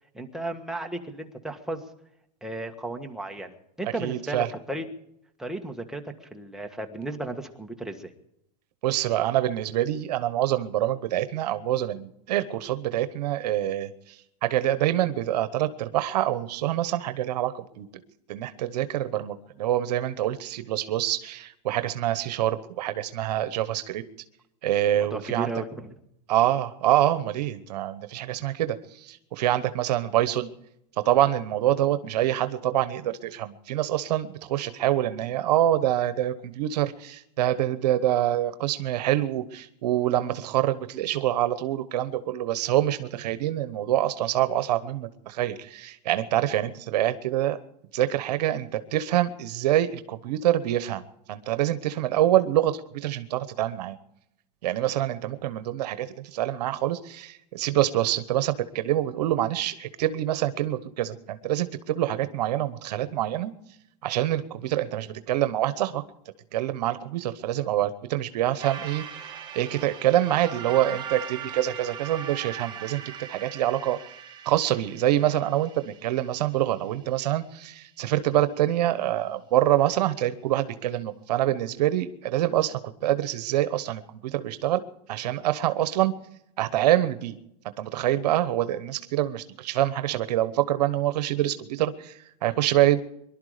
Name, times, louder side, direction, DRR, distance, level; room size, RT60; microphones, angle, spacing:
voice 1, 0.1-1.8 2.4-4.8 5.4-8.1 24.9-25.9, right 2 dB, ahead, 3 dB, 1.5 m, -34 dB
voice 2, 4.0-4.5 8.8-14.2 14.4-17.9 18.3-24.0 24.6-25.5 26.3-30.5 31.0-47.6 47.9-51.0 51.3-54.0 54.6-63.5 64.0-66.0 66.5-69.0 69.5-73.0 73.3-74.0 74.4-84.8 85.1-86.1 86.6-87.4 87.8-93.0, right 13 dB, 75° right, 12 dB, 1.1 m, -26 dB
sound 1, 68.6-77.1, right 8 dB, 20° right, 2.4 m, -40 dB
22.5 x 12.0 x 5.0 m, 0.78 s
supercardioid pair, 135°, 21 cm